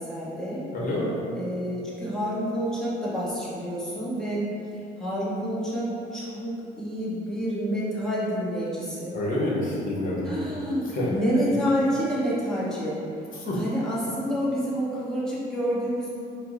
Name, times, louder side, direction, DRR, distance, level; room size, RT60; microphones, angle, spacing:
voice 1, 0.0-0.6 1.3-9.2 10.2-13.0 13.5-16.1, equal, 5° left, -9 dB, 0.9 m, -28 dB
voice 2, 0.7-1.2 9.1-10.3 10.9-11.1 13.4-13.6, left 1 dB, 45° left, -5 dB, 0.9 m, -27 dB
4.5 x 2.0 x 2.4 m, 2.8 s
cardioid pair, 100°, 20 cm